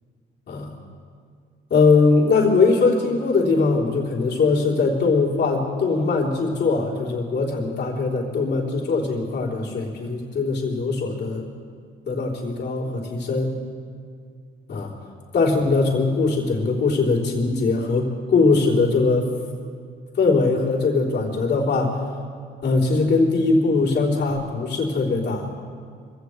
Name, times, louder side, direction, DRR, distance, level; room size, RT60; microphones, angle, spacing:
voice 1, 1.7-11.5 12.1-13.6 14.7-14.9 15.3-19.3 20.2-22.0 22.6-25.5, left 3 dB, 60° left, -3 dB, 3.5 m, -21 dB
24.0 x 16.0 x 3.2 m, 2.1 s
cardioid pair, 90°, 20 cm